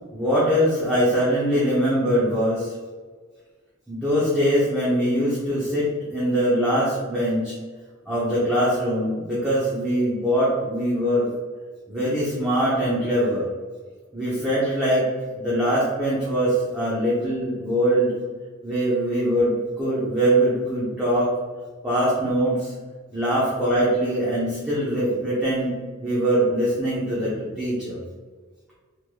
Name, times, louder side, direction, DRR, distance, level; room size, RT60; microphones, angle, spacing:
voice 1, 0.1-2.7 3.9-7.5 8.1-11.3 11.9-13.4 14.1-15.1 15.3-18.1 18.6-21.3 21.8-22.7 23.1-25.7 26.0-28.0, equal, 5° right, -9 dB, 0.7 m, -22 dB
3.1 x 3.0 x 2.2 m, 1.5 s
head